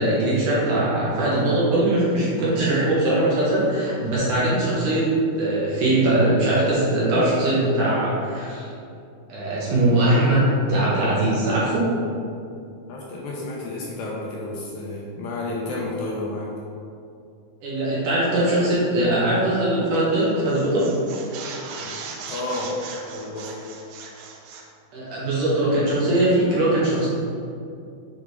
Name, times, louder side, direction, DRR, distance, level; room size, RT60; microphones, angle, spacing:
voice 1, 0.0-5.1 5.4-8.7 9.3-11.8 17.6-20.9 24.9-27.1, right 1 dB, 65° right, -7 dB, 2.5 m, -21 dB
voice 2, 12.9-16.5 21.8-22.8 23.1-23.6, left 2 dB, 80° left, -3 dB, 2.2 m, -31 dB
sound 1, 19.9-20.2 20.5-24.7, right 5 dB, 90° right, 1.8 m, -38 dB
6.9 x 3.6 x 4.6 m, 2.5 s
omnidirectional pair, 4.5 m